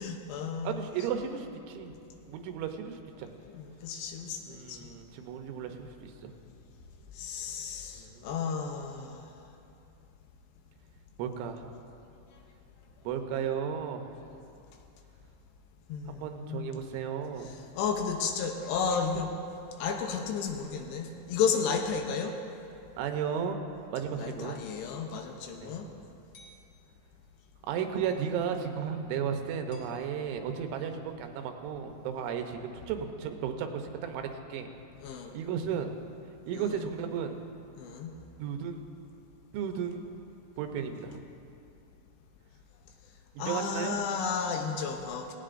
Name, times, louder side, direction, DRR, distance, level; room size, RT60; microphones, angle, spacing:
voice 1, 0.0-0.9 3.5-4.8 7.2-9.3 15.9-16.8 17.4-19.3 19.8-22.4 24.2-25.9 35.0-35.3 36.5-36.9 37.8-38.1 43.4-45.3, left 6 dB, 75° left, 4 dB, 2.8 m, -33 dB
voice 2, 0.6-1.9 2.3-3.3 4.5-6.3 8.0-8.4 11.2-11.7 13.0-14.1 16.1-17.5 23.0-23.6 23.9-24.6 25.6-25.8 27.7-34.7 35.3-35.9 36.5-37.4 38.4-38.8 39.5-40.1 40.6-41.2 43.4-44.0, right 7 dB, 85° right, 5 dB, 3.3 m, -34 dB
sound 1, 24.5-24.8 26.3-26.6 28.0-28.3 29.7-31.1, left 2 dB, 50° left, 1.5 m, -53 dB
18.0 x 17.5 x 2.6 m, 2.7 s
omnidirectional pair, 5.3 m